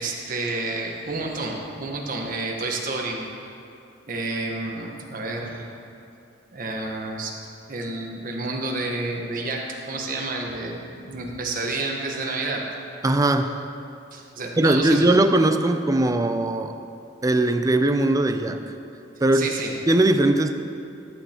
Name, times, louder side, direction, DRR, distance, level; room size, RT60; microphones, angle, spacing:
voice 1, 0.0-3.3 4.1-5.7 6.5-7.3 7.7-12.6 14.1-15.2 19.3-19.8, right 2 dB, 45° right, 0 dB, 1.2 m, -30 dB
voice 2, 13.0-13.6 14.6-16.7 17.2-18.6 19.2-19.5 19.9-20.5, right 1 dB, 20° right, 8 dB, 0.4 m, -20 dB
14.0 x 9.1 x 2.9 m, 2.6 s
head